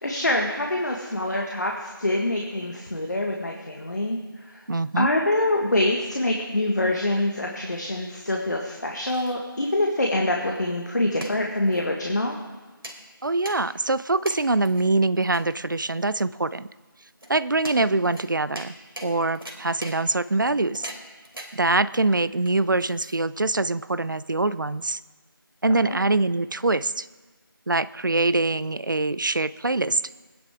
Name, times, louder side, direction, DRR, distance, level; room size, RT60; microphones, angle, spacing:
voice 1, 0.0-4.6 5.0-12.4 25.8-26.0, left 1 dB, 50° left, 0 dB, 1.7 m, -25 dB
voice 2, 4.7-5.1 13.2-16.7 17.3-18.7 19.0-20.9 21.5-25.0 25.6-27.1 27.7-30.0, right 2 dB, 60° right, 16 dB, 0.5 m, -24 dB
sound 1, 8.7-23.6, right 1 dB, 80° right, 3.2 m, -44 dB
21.5 x 10.5 x 3.6 m, 1.3 s
figure-of-eight pair, 175°, 12 cm